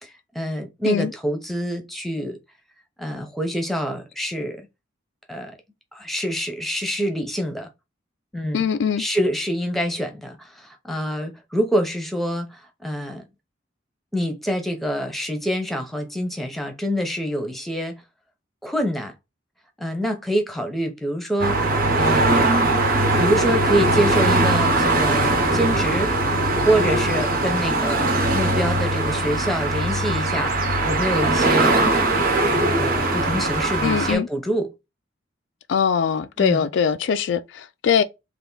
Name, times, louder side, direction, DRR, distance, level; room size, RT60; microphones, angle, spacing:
voice 1, 0.0-2.4 3.0-4.7 5.3-5.6 5.9-7.7 8.3-8.6 9.0-13.2 14.1-18.0 18.6-19.1 19.8-22.6 23.2-26.1 26.7-32.2 32.7-34.7 36.4-36.7, equal, ahead, 0.7 m, -26 dB
voice 2, 8.5-9.0 33.8-34.3 35.7-38.0, left 7 dB, 65° left, 0.3 m, -22 dB
sound 1, 21.4-34.1, right 2 dB, 50° right, 1.0 m, -20 dB
3.4 x 2.5 x 3.8 m
head